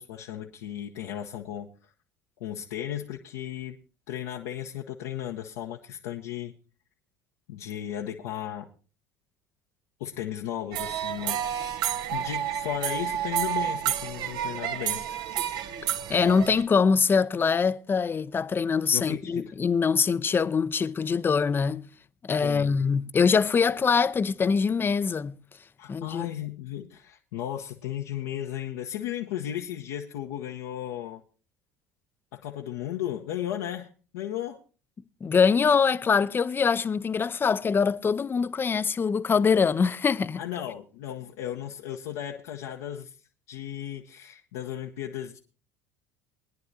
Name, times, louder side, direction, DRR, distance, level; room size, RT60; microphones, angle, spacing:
voice 1, 0.0-1.9 2.4-3.8 4.1-6.5 7.5-8.7 10.0-11.8 12.1-15.1 18.9-19.5 22.4-22.8 25.8-31.2 32.3-34.6 40.4-43.2 43.5-45.4, left 11 dB, 65° left, 0.9 m, -35 dB
sound 1, 10.7-16.6, right 10 dB, 55° right, 0.8 m, -30 dB
voice 2, 16.1-21.9 22.2-25.4 25.9-26.3 35.2-40.4, left 5 dB, 25° left, 0.6 m, -23 dB
21.5 x 10.5 x 2.7 m
figure-of-eight pair, 65°, 9 cm